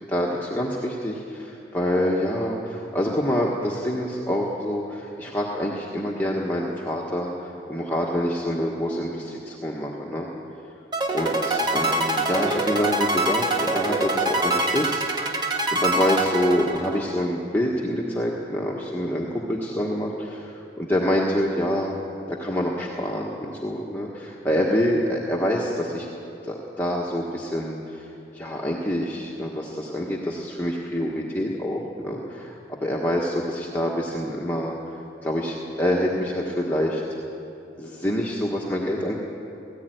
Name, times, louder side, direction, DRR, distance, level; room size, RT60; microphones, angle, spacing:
voice 1, 0.1-10.3 11.1-21.9 22.3-26.1 26.4-28.1 28.3-34.7 35.2-37.0 37.8-39.1, equal, 10° left, -4 dB, 1.4 m, -26 dB
sound 1, 10.9-17.2, right 2 dB, 25° right, 1.6 m, -24 dB
18.5 x 15.0 x 9.3 m, 2.9 s
head